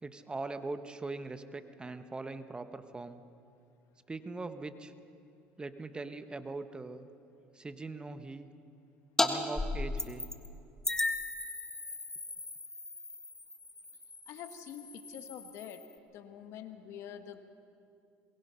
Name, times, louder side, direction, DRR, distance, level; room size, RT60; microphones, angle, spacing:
voice 1, 0.0-3.2 4.1-4.9 5.6-7.1 7.5-8.5 9.2-10.2, right 3 dB, 20° right, 10 dB, 1.1 m, -41 dB
sound 1, 9.2-9.3 9.6-10.5 10.8-15.9, left 2 dB, 10° left, 1.7 m, -36 dB
voice 2, 14.3-15.9 16.1-17.4, left 9 dB, 65° left, 9 dB, 1.4 m, -46 dB
22.0 x 21.0 x 5.7 m, 2.5 s
supercardioid pair, 85°, 5 cm